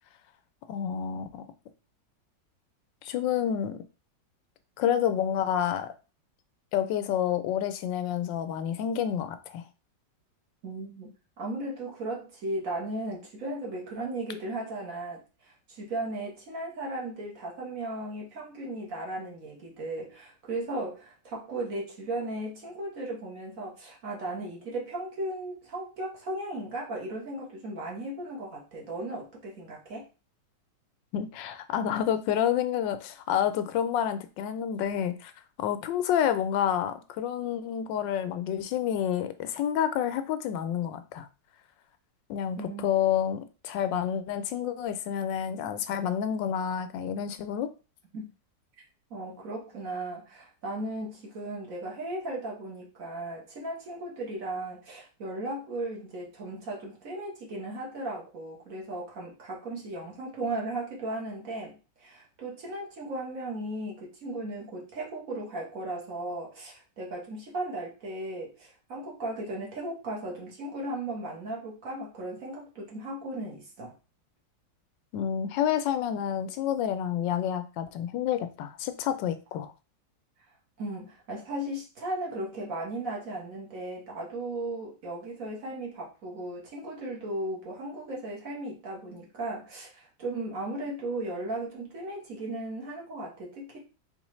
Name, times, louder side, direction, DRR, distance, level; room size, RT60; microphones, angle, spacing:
voice 1, 0.7-1.4 3.0-3.8 4.8-5.9 6.7-9.6 31.1-35.3 35.6-41.3 42.3-47.7 75.1-79.7, left 9 dB, 85° left, 11 dB, 1.3 m, -29 dB
voice 2, 10.6-11.1 11.4-30.1 42.6-42.9 48.1-48.3 49.1-73.9 80.8-93.8, right 1 dB, 50° right, -2 dB, 1.6 m, -36 dB
3.9 x 3.9 x 3.1 m, 0.32 s
omnidirectional pair, 1.9 m